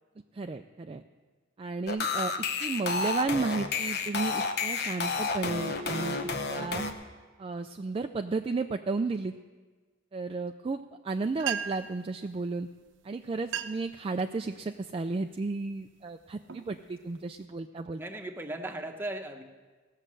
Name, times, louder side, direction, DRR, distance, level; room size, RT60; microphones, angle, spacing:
voice 1, 0.3-1.0 1.6-2.3 2.6-6.2 6.5-6.8 7.4-9.3 10.1-12.7 13.0-18.0, right 3 dB, 30° right, 6 dB, 0.3 m, -33 dB
sound 1, 1.9-6.9, left 4 dB, 55° left, 0.9 m, -31 dB
sound 2, 11.1-11.2 11.4-12.0 12.9-13.0 13.4-14.0 14.4-14.8 15.4-15.7 16.2-17.5, right 8 dB, 70° right, 0.7 m, -37 dB
voice 2, 18.0-19.4, right 1 dB, 10° right, 4 dB, 0.9 m, -37 dB
16.5 x 6.5 x 7.5 m, 1.4 s
head